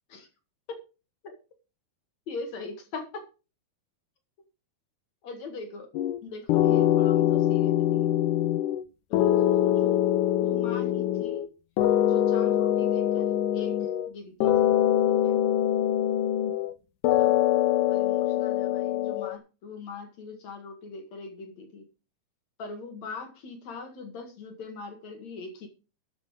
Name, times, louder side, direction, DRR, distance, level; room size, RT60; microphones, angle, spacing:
voice 1, 2.3-3.3 5.2-5.9 6.2-8.1 9.1-11.4 12.0-14.7 15.1-15.4 17.2-17.4 17.8-21.9 22.6-25.7, left 4 dB, 50° left, 6 dB, 2.7 m, -41 dB
sound 1, 5.9-6.2 6.5-8.8 9.1-11.5 11.8-14.1 14.4-16.7 17.0-19.4, left 12 dB, 85° left, 1.8 m, -24 dB
13.5 x 7.7 x 4.9 m, 0.33 s
omnidirectional pair, 4.6 m